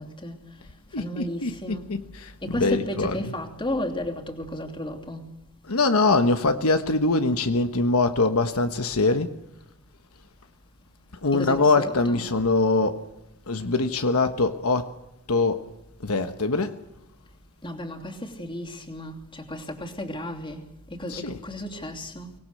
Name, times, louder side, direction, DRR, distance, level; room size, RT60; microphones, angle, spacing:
voice 1, 0.0-1.9 2.4-5.3 5.6-5.7 11.3-12.2 17.6-22.3, left 1 dB, 25° left, 3.0 m, -34 dB
voice 2, 0.9-3.3 5.7-9.3 11.2-13.0 13.5-14.9 15.3-15.6 16.0-16.7 21.1-21.4, left 3 dB, 75° left, 1.3 m, -23 dB
25.0 x 19.0 x 6.7 m
head